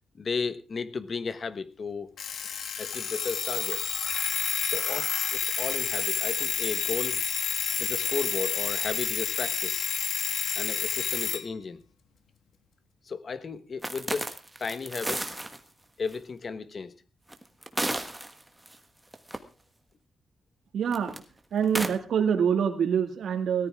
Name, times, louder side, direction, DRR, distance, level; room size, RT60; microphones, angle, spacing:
voice 1, 0.2-2.1 2.8-3.9 4.6-7.2 7.8-9.8 10.5-11.8 13.0-14.3 14.6-15.3 16.0-16.9, left 5 dB, 40° left, 13 dB, 1.2 m, -34 dB
Alarm, 2.2-11.4, left 7 dB, 70° left, 1.5 m, -29 dB
sound 1, 13.8-15.6 16.1-16.2 17.3-18.8 19.1-19.4 20.9-21.2 21.6-21.9, right 1 dB, 10° right, 1.4 m, -32 dB
voice 2, 20.7-21.2 21.5-23.7, right 7 dB, 75° right, 7 dB, 2.1 m, -25 dB
17.5 x 14.0 x 3.6 m, 0.32 s
wide cardioid pair, 155°, 0 cm